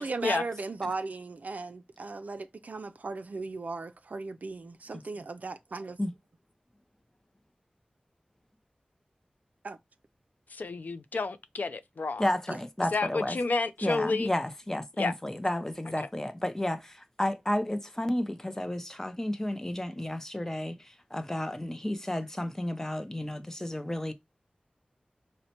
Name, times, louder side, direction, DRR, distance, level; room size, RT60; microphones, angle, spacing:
voice 1, 0.0-6.0 9.6-9.8 12.5-12.6, right 3 dB, 65° right, 0.4 m, -37 dB
voice 2, 10.5-12.3 12.9-14.3 15.0-15.1 16.0-16.1, left 3 dB, 80° left, 0.4 m, -30 dB
voice 3, 12.2-13.4 13.8-24.1, left 1 dB, 15° left, 0.5 m, -32 dB
4.1 x 2.1 x 2.8 m
wide cardioid pair, 55°, 3 cm